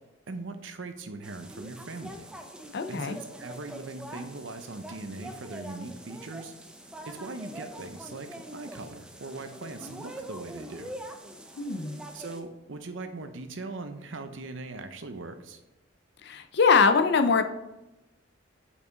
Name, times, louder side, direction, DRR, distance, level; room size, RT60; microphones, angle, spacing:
voice 1, 0.3-2.3 2.9-6.5 7.1-10.9 12.1-15.6, right 3 dB, 70° right, 8 dB, 0.7 m, -40 dB
sound 1, 1.2-12.4, right 1 dB, 5° right, 0.4 m, -44 dB
voice 2, 2.7-3.2 11.6-12.0 16.2-17.4, left 5 dB, 60° left, 8 dB, 0.5 m, -23 dB
5.4 x 4.9 x 3.9 m, 0.97 s
head